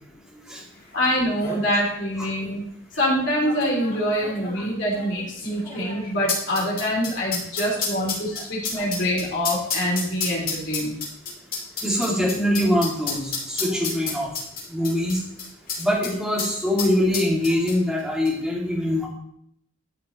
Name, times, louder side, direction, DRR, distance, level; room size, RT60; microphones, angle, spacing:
voice 1, 0.9-2.6 3.0-10.9, equal, 65° left, -4 dB, 3.0 m, -25 dB
sound 1, 0.9-1.0 1.2-1.6 2.4-2.5 3.4-16.1 16.4-16.5 16.8-18.0 18.3-18.4, left 4 dB, 45° left, 3.2 m, -30 dB
voice 2, 11.8-14.3 14.7-15.2 15.8-19.1, left 1 dB, 5° right, -5 dB, 2.4 m, -23 dB
13.0 x 5.9 x 3.1 m, 0.71 s
head